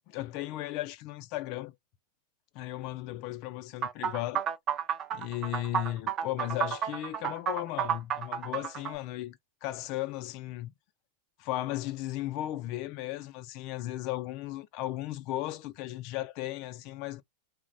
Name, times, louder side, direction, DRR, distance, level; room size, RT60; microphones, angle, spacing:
voice 1, 0.1-1.7 2.6-4.5 5.1-10.7 11.4-17.2, left 15 dB, 50° left, 0.3 m, -36 dB
sound 1, 3.8-8.9, right 8 dB, 35° right, 0.4 m, -31 dB
3.1 x 2.1 x 2.5 m
hypercardioid pair, 120°, 0 cm